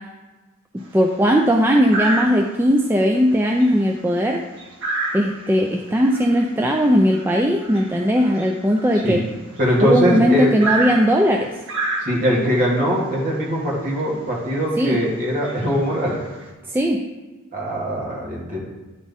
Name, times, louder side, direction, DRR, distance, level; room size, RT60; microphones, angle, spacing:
sound 1, 0.8-1.2 1.9-2.7 3.1-3.3 3.6-9.9 10.6-12.5 13.5-13.6 14.0-14.1 14.7-14.9 15.3-16.5, right 2 dB, 60° right, 1.4 m, -29 dB
voice 1, 0.9-4.4 5.1-9.2 9.8-11.5 14.8-15.0 16.7-17.0, equal, 10° right, 1 dB, 0.3 m, -18 dB
voice 2, 9.6-10.5 12.0-16.2 17.5-18.6, equal, 40° right, -4 dB, 2.0 m, -21 dB
10.5 x 4.1 x 3.6 m, 1.2 s
head